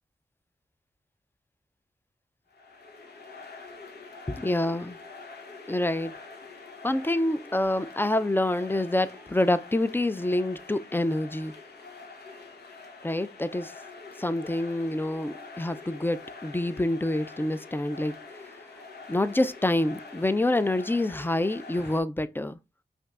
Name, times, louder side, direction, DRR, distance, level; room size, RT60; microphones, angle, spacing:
sound 1, 2.5-22.0, left 3 dB, 80° left, 0.9 m, -45 dB
voice 1, 4.3-5.0 5.7-6.2 6.8-11.6 13.0-13.7 14.2-18.6 19.1-22.6, left 1 dB, 15° left, 0.4 m, -27 dB
5.1 x 2.6 x 2.3 m
cardioid pair, 40°, 17 cm